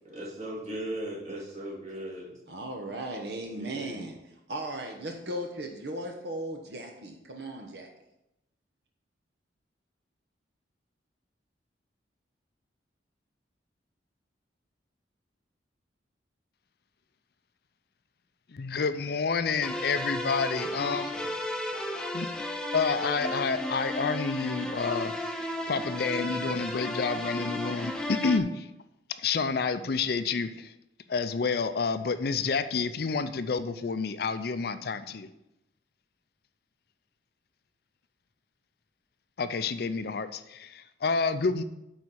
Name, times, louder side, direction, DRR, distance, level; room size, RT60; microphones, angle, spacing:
voice 1, 0.0-2.3 3.5-4.1, right 1 dB, 40° right, -4 dB, 2.6 m, -38 dB
voice 2, 2.5-4.1 4.5-7.9, right 1 dB, 60° right, 2 dB, 1.0 m, -37 dB
voice 3, 18.5-21.4 22.1-22.3 22.7-25.1 25.7-28.7 29.2-30.7 31.1-35.3 39.4-41.6, left 4 dB, 55° left, 11 dB, 0.4 m, -29 dB
sound 1, 19.6-28.4, left 1 dB, 5° left, 0.6 m, -34 dB
9.4 x 4.2 x 6.3 m, 0.89 s
head